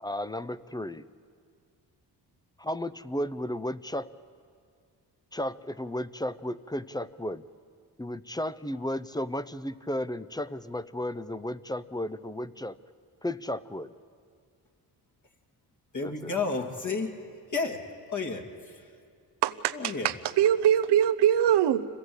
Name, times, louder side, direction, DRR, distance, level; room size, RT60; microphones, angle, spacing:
voice 1, 0.0-1.1 2.6-4.1 5.3-7.5 8.0-12.8 13.2-13.9 16.0-16.3, left 1 dB, 10° left, 14 dB, 0.6 m, -34 dB
voice 2, 15.9-17.1 17.5-17.8 18.1-18.9 19.7-20.1, left 4 dB, 45° left, 2 dB, 2.8 m, -31 dB
voice 3, 19.4-21.8, right 10 dB, 80° right, 12 dB, 0.9 m, -23 dB
26.0 x 17.0 x 8.1 m, 2.2 s
cardioid pair, 70°, 40 cm